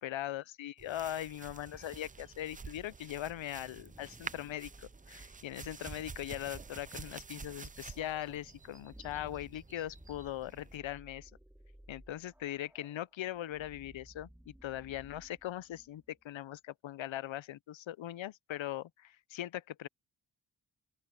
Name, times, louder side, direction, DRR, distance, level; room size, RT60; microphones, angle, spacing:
voice 1, 0.0-11.3 11.9-19.9, left 12 dB, 80° left, 0.6 m, -40 dB
sound 1, 0.8-10.8, right 4 dB, 20° right, 0.3 m, -49 dB
sound 2, 3.6-16.2, right 1 dB, 5° right, 2.4 m, -58 dB
open air
wide cardioid pair, 145°, 46 cm